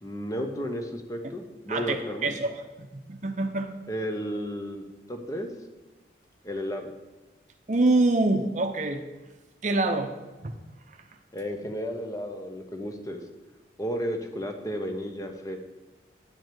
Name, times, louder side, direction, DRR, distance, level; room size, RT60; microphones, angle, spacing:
voice 1, 0.0-2.3 3.9-4.8 5.1-5.5 6.4-6.9 11.3-13.2 13.8-15.6, equal, 20° left, 5 dB, 1.0 m, -33 dB
voice 2, 1.7-3.7 7.7-9.0 9.6-10.1 10.4-10.6, right 2 dB, 40° right, 6 dB, 0.7 m, -26 dB
10.5 x 5.1 x 7.7 m, 1.2 s
head